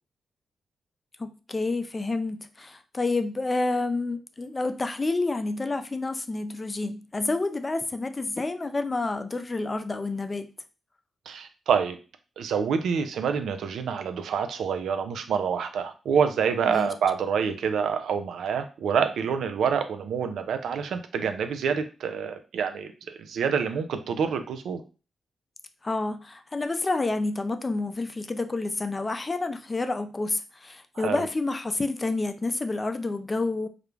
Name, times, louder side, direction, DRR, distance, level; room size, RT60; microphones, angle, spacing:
voice 1, 1.2-10.5 16.7-16.9 25.8-33.7, left 3 dB, 30° left, 8 dB, 0.3 m, -29 dB
voice 2, 11.3-12.0 12.4-24.8 31.0-31.2, right 7 dB, 80° right, 8 dB, 0.3 m, -27 dB
2.3 x 2.1 x 3.1 m, 0.34 s
cardioid pair, 60°, 0 cm